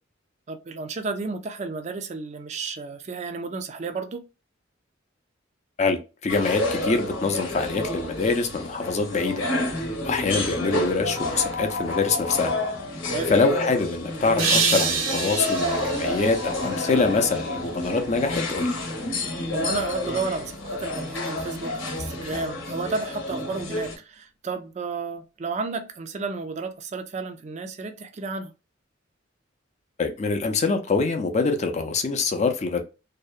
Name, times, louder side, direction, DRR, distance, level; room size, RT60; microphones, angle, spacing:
voice 1, 0.5-4.2 10.3-10.5 13.1-13.3 19.5-28.5, right 4 dB, 35° right, 0.3 m, -32 dB
voice 2, 5.8-12.5 13.3-18.7 30.0-32.8, left 4 dB, 35° left, 0.4 m, -25 dB
sound 1, 6.3-24.0, left 1 dB, 90° left, 0.9 m, -29 dB
sound 2, 14.4-17.5, right 4 dB, 75° right, 0.6 m, -27 dB
2.7 x 2.1 x 2.3 m
head